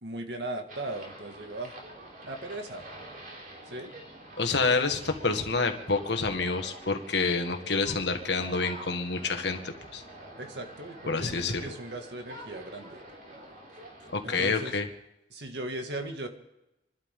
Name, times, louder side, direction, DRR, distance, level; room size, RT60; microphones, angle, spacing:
voice 1, 0.0-1.8 2.2-2.8 3.7-3.9 10.4-13.0 14.2-14.8 15.3-16.3, right 2 dB, 75° right, 4 dB, 2.1 m, -38 dB
sound 1, 0.7-14.6, right 1 dB, 50° right, 3.6 m, -46 dB
voice 2, 4.4-10.0 11.1-11.6 14.1-14.9, left 4 dB, 75° left, 5 dB, 1.7 m, -28 dB
28.5 x 12.0 x 3.8 m, 0.92 s
head